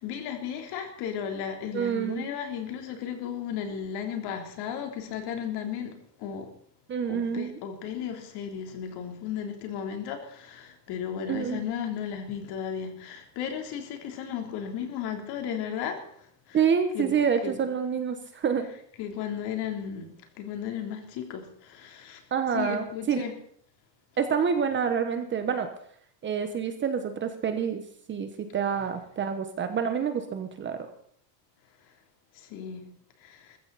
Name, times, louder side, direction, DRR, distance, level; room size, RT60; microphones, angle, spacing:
voice 1, 0.0-5.9 6.2-6.5 7.1-16.0 16.5-16.6 16.9-17.2 17.4-17.6 19.0-20.1 20.4-21.4 21.7-22.2 22.5-23.3 32.5-32.8, left 8 dB, 50° left, 4 dB, 3.5 m, -34 dB
voice 2, 1.7-2.2 6.9-7.6 11.3-11.6 16.5-18.7 22.3-23.2 24.2-25.7 26.2-27.8 28.1-30.8, right 7 dB, 25° right, 8 dB, 1.2 m, -27 dB
21.5 x 15.0 x 4.2 m, 0.63 s
cardioid pair, 160°, 49 cm